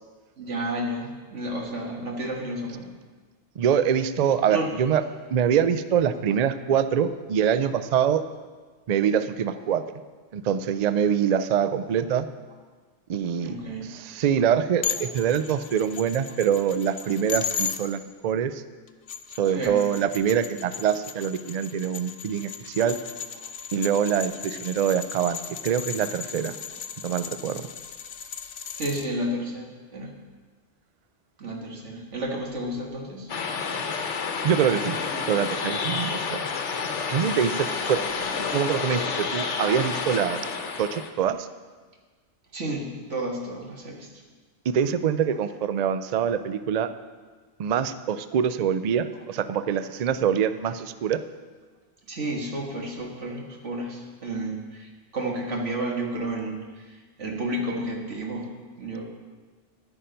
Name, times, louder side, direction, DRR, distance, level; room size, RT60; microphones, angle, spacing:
voice 1, 0.4-2.9 4.5-4.7 13.4-14.0 19.5-19.8 20.8-20.9 28.8-30.1 31.4-33.4 42.5-44.1 49.6-49.7 52.1-58.5 58.8-59.1, right 1 dB, 90° right, 0 dB, 1.9 m, -31 dB
voice 2, 3.6-5.0 5.3-8.2 8.9-9.8 10.3-12.3 13.1-13.5 13.8-18.6 19.4-23.0 23.7-26.6 27.0-27.7 34.4-35.0 35.3-36.4 37.1-38.0 38.4-40.4 40.8-41.5 44.7-46.9 47.6-51.2, right 8 dB, 60° right, 12 dB, 0.4 m, -24 dB
sound 1, 14.8-17.8 18.9-29.1, left 8 dB, 60° left, 0.7 m, -36 dB
sound 2, 33.3-41.1, left 5 dB, 80° left, 1.2 m, -29 dB
11.0 x 8.7 x 5.2 m, 1.4 s
omnidirectional pair, 1.2 m